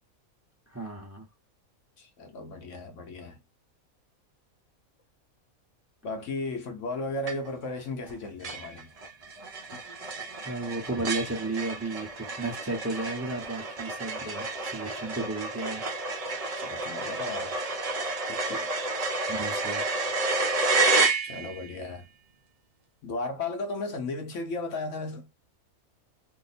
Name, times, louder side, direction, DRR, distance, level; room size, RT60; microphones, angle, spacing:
voice 1, 0.7-1.2 10.4-15.9 19.3-20.0, right 2 dB, 15° right, 0.7 m, -34 dB
voice 2, 2.0-3.4 6.0-8.9 9.7-9.8 16.5-17.6 18.3-18.7 21.2-22.1 23.0-25.3, left 2 dB, 65° left, 0.9 m, -35 dB
sound 1, 7.3-7.7 8.1-8.2 8.4-21.7, right 3 dB, 60° right, 0.4 m, -30 dB
2.8 x 2.1 x 4.0 m
omnidirectional pair, 1.5 m